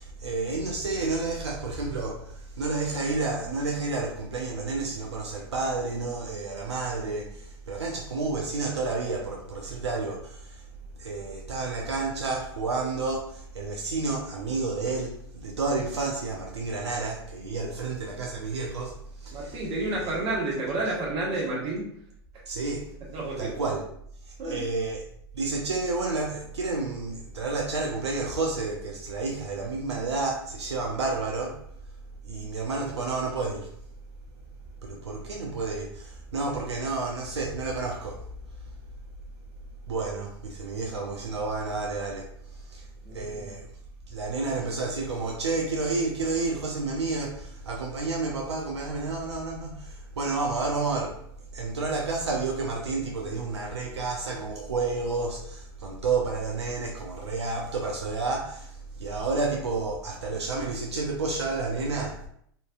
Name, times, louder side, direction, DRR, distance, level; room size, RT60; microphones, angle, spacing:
voice 1, 0.0-10.7 11.0-19.6 22.5-23.0 23.4-23.9 24.3-25.0 25.3-31.6 32.2-33.7 34.8-38.3 39.9-43.7 44.1-51.2 51.5-62.2, right 3 dB, 90° right, 0.4 m, -30 dB
voice 2, 19.3-21.9 22.3-22.4 23.1-23.5 24.4-24.7 43.0-43.5, right 2 dB, 45° right, 1.3 m, -30 dB
2.6 x 2.6 x 2.3 m
hypercardioid pair, 100°, 14 cm